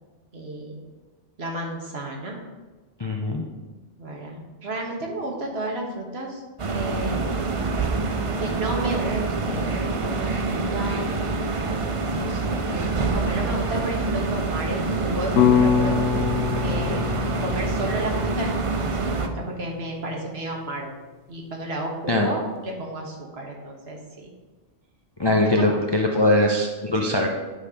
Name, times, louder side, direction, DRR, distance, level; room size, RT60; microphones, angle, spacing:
voice 1, 0.3-0.8 1.4-2.4 4.0-7.4 8.4-11.1 12.1-16.0 16.6-17.1 17.4-20.9 21.3-24.3 25.2-25.7 26.1-26.5 27.0-27.3, right 1 dB, 55° right, 0 dB, 1.6 m, -32 dB
voice 2, 3.0-3.4 22.1-22.3 25.2-27.3, left 1 dB, 30° left, 1 dB, 0.5 m, -21 dB
sound 1, 6.6-19.3, right 3 dB, 40° right, 0.5 m, -26 dB
sound 2, 15.4-19.6, left 7 dB, 85° left, 1.0 m, -24 dB
9.6 x 4.3 x 4.9 m, 1.3 s
omnidirectional pair, 1.3 m